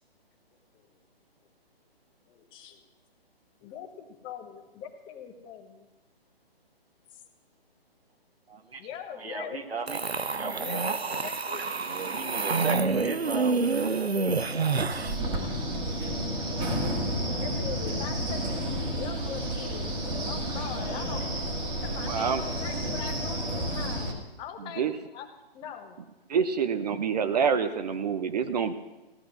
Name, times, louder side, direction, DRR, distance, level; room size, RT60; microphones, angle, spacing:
voice 1, 2.3-2.8 3.6-5.9 8.8-9.7 10.5-11.6 16.7-21.3 21.8-25.3 25.5-26.0, left 8 dB, 15° left, 4 dB, 1.3 m, -42 dB
voice 2, 8.5-8.9 9.2-10.6 10.9-11.1 11.5-14.8 15.8-15.9, right 4 dB, 75° right, 5 dB, 1.8 m, -38 dB
sound 1, 9.9-15.2, right 4 dB, 90° right, 0.9 m, -28 dB
Wind, 14.9-24.1, equal, 15° right, 2.0 m, -31 dB
voice 3, 22.1-22.4 24.8-24.9 26.3-28.7, right 6 dB, 40° right, 9 dB, 0.9 m, -26 dB
15.5 x 10.5 x 7.6 m, 1.0 s
figure-of-eight pair, 140°, 31 cm